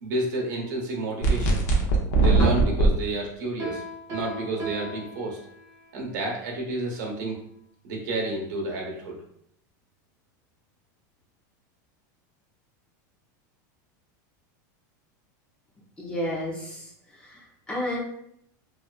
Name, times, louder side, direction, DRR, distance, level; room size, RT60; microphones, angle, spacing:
voice 1, 0.0-1.6 2.2-3.8 4.1-5.4 5.9-7.4 7.8-9.2, right 2 dB, 75° right, -1 dB, 0.9 m, -30 dB
sound 1, 1.2-2.9, right 3 dB, 55° left, 0.6 m, -20 dB
Piano, 3.6-5.9, right 2 dB, 30° right, 0.9 m, -37 dB
voice 2, 16.0-16.9 17.2-18.0, left 1 dB, 10° left, -3 dB, 0.5 m, -31 dB
2.7 x 2.3 x 2.3 m, 0.72 s
supercardioid pair, 165°, 10 cm